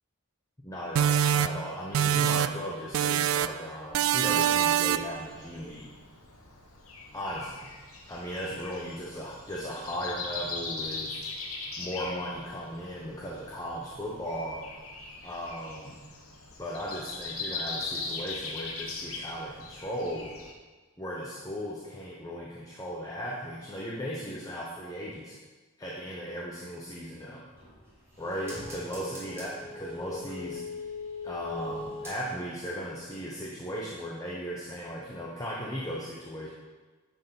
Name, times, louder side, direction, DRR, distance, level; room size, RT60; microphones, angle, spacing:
voice 1, 0.6-5.9 7.1-7.7 8.1-11.1 11.8-14.7 15.2-16.0 16.6-20.3 21.0-25.4 25.8-27.5 28.2-30.6 31.2-36.5, equal, 15° left, -4 dB, 0.9 m, -37 dB
sound 1, 1.0-2.7 2.9-3.6 3.9-5.2, right 9 dB, 70° right, 0.3 m, -25 dB
Breathing, 4.9-20.5, left 3 dB, 80° left, 1.4 m, -40 dB
sound 2, 27.5-32.6 33.0-33.1, left 3 dB, 10° right, 2.3 m, -41 dB
9.8 x 4.6 x 5.8 m, 1.3 s
head